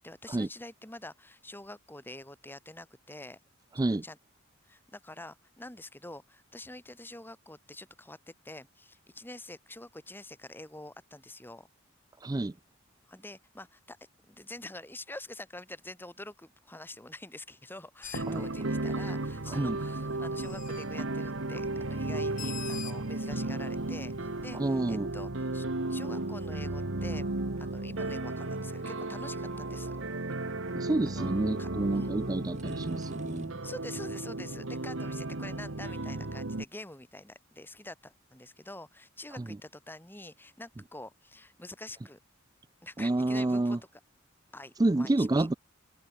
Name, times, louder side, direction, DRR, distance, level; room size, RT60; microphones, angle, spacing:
voice 1, 0.0-3.4 3.8-4.2 4.7-11.7 13.1-14.0 14.3-27.3 27.6-30.0 31.1-32.2 33.6-42.2 42.8-43.8 44.5-45.5, left 2 dB, 10° left, 2.2 m, -46 dB
voice 2, 3.7-4.0 12.2-12.5 18.3-18.4 19.5-19.8 24.5-25.1 30.7-33.6 39.3-39.6 43.0-43.8 44.8-45.5, right 2 dB, 20° right, 0.4 m, -29 dB
Bird, 18.0-24.7, left 7 dB, 40° left, 7.7 m, -48 dB
sound 1, 18.1-36.6, right 2 dB, 65° right, 1.5 m, -34 dB
sound 2, 26.0-33.5, right 3 dB, 35° right, 7.5 m, -55 dB
head